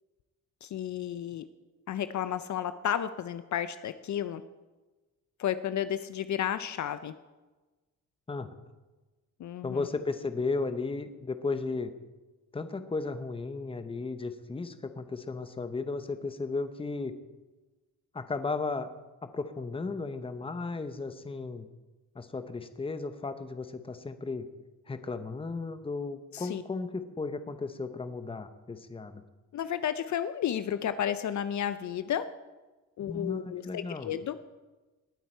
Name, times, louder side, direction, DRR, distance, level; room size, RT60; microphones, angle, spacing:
voice 1, 0.6-1.5 1.9-4.4 5.4-7.1 9.4-9.9 26.3-26.6 29.5-32.2 33.0-34.4, left 10 dB, 60° left, 12 dB, 0.6 m, -32 dB
voice 2, 9.6-11.9 12.5-17.1 18.1-18.9 19.2-21.7 22.1-24.5 24.9-29.2 33.0-34.1, left 3 dB, 15° left, 10 dB, 0.9 m, -35 dB
20.0 x 9.3 x 4.5 m, 1.2 s
cardioid pair, 130°, 34 cm